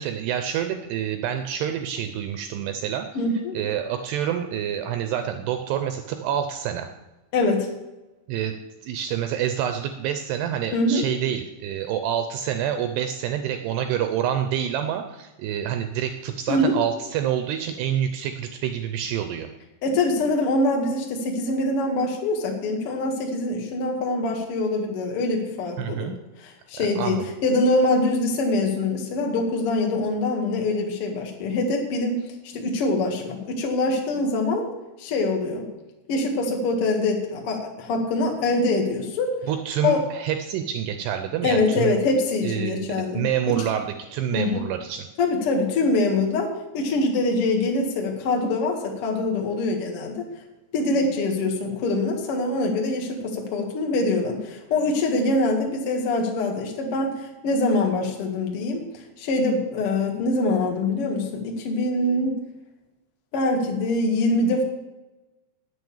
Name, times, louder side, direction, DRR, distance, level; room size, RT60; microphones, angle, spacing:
voice 1, 0.0-3.1 3.5-6.9 8.3-8.6 8.8-19.5 25.8-26.1 26.8-27.3 39.4-42.0 42.4-45.1, right 9 dB, 85° right, 7 dB, 2.4 m, -27 dB
voice 2, 3.1-3.5 7.3-7.7 10.7-11.0 16.5-16.8 19.8-26.1 26.4-32.2 32.5-34.7 35.0-35.6 36.1-39.3 39.8-40.0 41.4-43.2 43.5-43.6 44.3-44.6 45.2-50.2 50.7-58.8 59.2-62.4 63.3-64.6, left 2 dB, 65° left, 1 dB, 1.4 m, -24 dB
9.6 x 9.1 x 7.1 m, 1.1 s
omnidirectional pair, 5.6 m